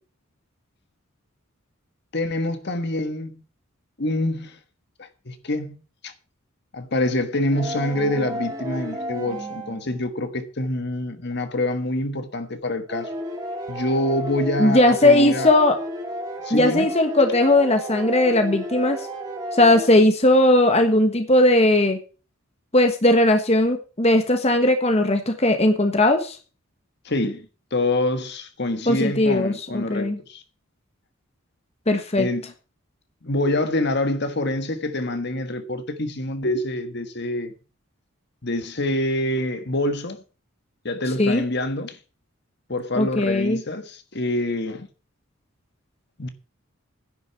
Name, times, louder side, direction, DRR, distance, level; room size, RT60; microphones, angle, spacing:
voice 1, 2.1-3.4 4.0-4.6 5.0-6.1 6.7-13.1 13.7-15.5 16.4-16.9 27.0-27.5 27.7-30.4 32.2-32.4 33.2-37.5 38.4-40.2 40.8-42.0 42.7-44.9 46.2-46.3, left 1 dB, 50° left, 1.4 m, -26 dB
sound 1, 7.5-9.9 12.9-19.9, equal, 20° right, 2.5 m, -32 dB
voice 2, 14.6-15.8 16.5-19.1 19.5-22.0 22.7-26.4 28.9-30.2 31.9-32.3 41.2-41.4 42.9-43.6, left 1 dB, 30° left, 1.3 m, -18 dB
10.5 x 6.4 x 8.2 m
head